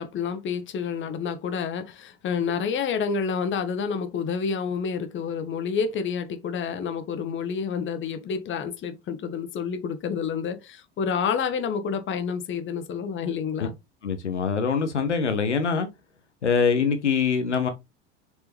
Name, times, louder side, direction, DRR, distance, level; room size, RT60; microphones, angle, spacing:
voice 1, 0.0-13.7, left 6 dB, 35° left, 1.7 m, -29 dB
voice 2, 14.0-15.9 16.4-17.7, left 6 dB, 80° left, 1.4 m, -23 dB
6.8 x 5.3 x 3.5 m
figure-of-eight pair, 80°, 34 cm